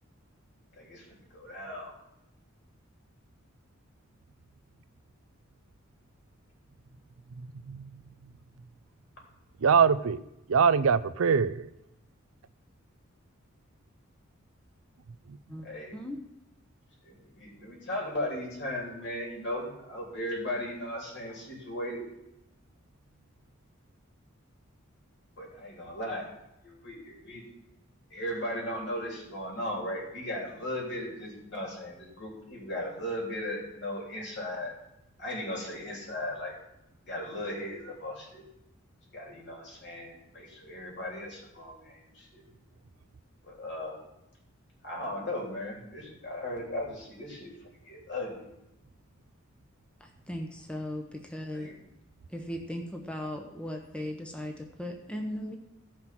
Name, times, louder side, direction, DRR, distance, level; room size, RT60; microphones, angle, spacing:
voice 1, 0.8-2.0 15.6-16.0 17.0-22.0 25.4-26.3 26.8-27.4 28.1-34.8 35.2-36.5 37.1-38.4 39.1-42.4 43.4-44.0 44.8-47.5 47.8-48.4 51.5-51.7, left 1 dB, 55° left, 3.7 m, -37 dB
voice 2, 7.4-7.9 9.6-10.2 10.5-11.7, right 6 dB, 90° right, 0.5 m, -23 dB
voice 3, 15.5-16.2 50.0-51.7 52.3-55.6, left 1 dB, 5° left, 0.9 m, -38 dB
15.5 x 5.8 x 6.0 m
head